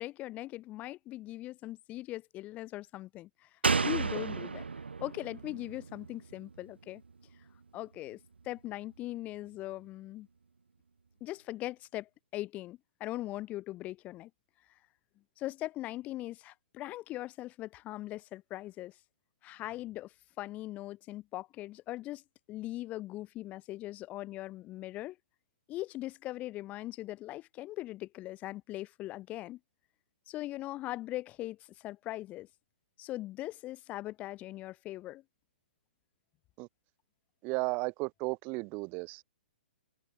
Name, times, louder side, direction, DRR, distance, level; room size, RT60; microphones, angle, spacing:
voice 1, 0.0-3.5 3.8-4.6 5.0-7.0 7.7-10.3 11.2-14.3 15.4-19.0 19.4-22.2 22.5-25.2 25.7-29.6 30.3-32.5 33.0-35.2, left 16 dB, 25° left, 7.1 m, -40 dB
Slam, 3.6-7.1 7.4-7.5, right 4 dB, 80° right, 0.8 m, -33 dB
voice 2, 37.4-39.2, right 28 dB, 30° right, 1.1 m, -34 dB
figure-of-eight pair, 120°, 6 cm